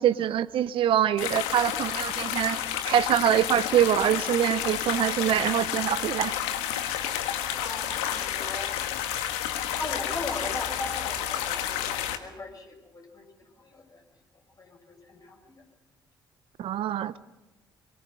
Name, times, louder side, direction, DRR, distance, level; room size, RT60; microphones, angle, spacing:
voice 1, 0.0-6.4 6.7-6.8 16.6-17.2, right 10 dB, 50° right, 17 dB, 0.7 m, -24 dB
sound 1, 1.2-12.2, left 11 dB, 65° left, 1.6 m, -30 dB
voice 2, 7.4-8.8 9.8-14.0 14.3-15.6, left 2 dB, 30° left, 2 dB, 6.8 m, -39 dB
24.0 x 22.5 x 6.7 m, 1.0 s
figure-of-eight pair, 50°, 11 cm